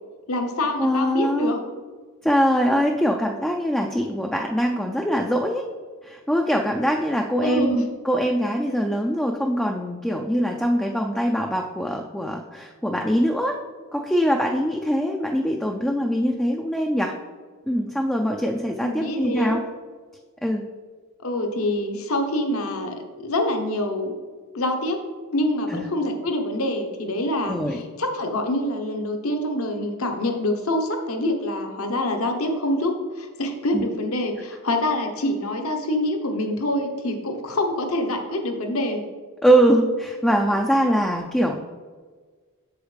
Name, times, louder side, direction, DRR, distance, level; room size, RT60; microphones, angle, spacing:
voice 1, 0.3-1.6 7.4-7.8 18.8-19.6 21.2-24.1 24.5-25.0 25.3-39.0, left 1 dB, 70° left, 4 dB, 1.0 m, -26 dB
voice 2, 0.8-1.5 2.2-5.6 6.0-13.6 13.9-17.1 17.7-19.6 20.4-20.6 25.7-25.8 27.5-27.8 33.7-33.8 39.4-41.6, equal, 5° left, 1 dB, 0.3 m, -22 dB
8.0 x 7.1 x 3.3 m, 1.5 s
head